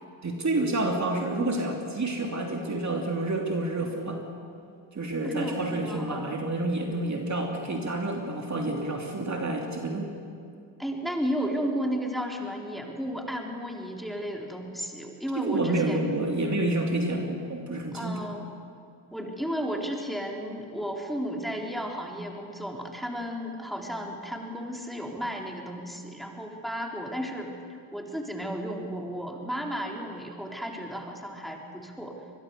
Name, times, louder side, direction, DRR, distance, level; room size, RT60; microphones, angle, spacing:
voice 1, 0.2-4.2 4.9-10.1 15.4-18.2, right 2 dB, 35° right, 1 dB, 3.0 m, -29 dB
voice 2, 5.2-6.4 10.8-16.1 17.9-18.5 19.1-27.5 27.9-32.2, equal, ahead, 0 dB, 3.8 m, -33 dB
23.5 x 21.5 x 6.8 m, 2.4 s
supercardioid pair, 65°, 49 cm